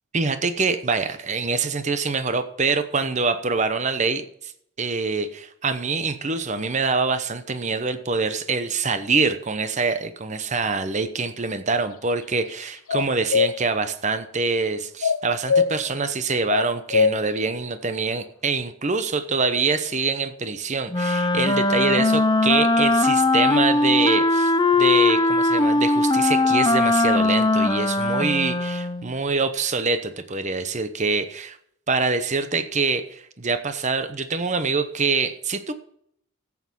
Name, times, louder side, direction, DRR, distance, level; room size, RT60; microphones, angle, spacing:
voice 1, 0.1-4.5 4.8-24.5 24.8-31.5 31.9-35.7, right 4 dB, 35° right, 10 dB, 0.9 m, -25 dB
sound 1, 12.9-13.5 15.0-15.7 16.5-17.2, left 6 dB, 80° left, 0.8 m, -20 dB
Wind instrument woodwind instrument, 20.9-29.1, left 2 dB, 20° left, 0.6 m, -20 dB
12.0 x 8.5 x 5.4 m, 0.69 s
head